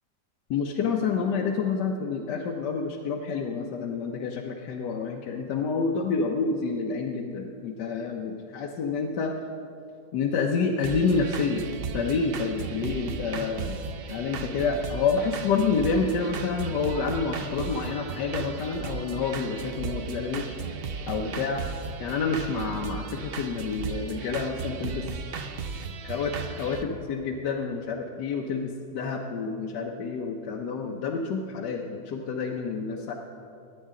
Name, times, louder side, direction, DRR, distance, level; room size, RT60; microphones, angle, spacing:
voice 1, 0.5-9.3 10.1-11.6 11.9-13.8 14.1-20.6 21.1-21.6 22.0-25.0 26.0-33.1, left 5 dB, 75° left, 1 dB, 1.3 m, -28 dB
sound 1, 10.8-26.8, right 5 dB, 65° right, 0.5 m, -35 dB
20.0 x 9.0 x 3.7 m, 2.5 s
omnidirectional pair, 1.9 m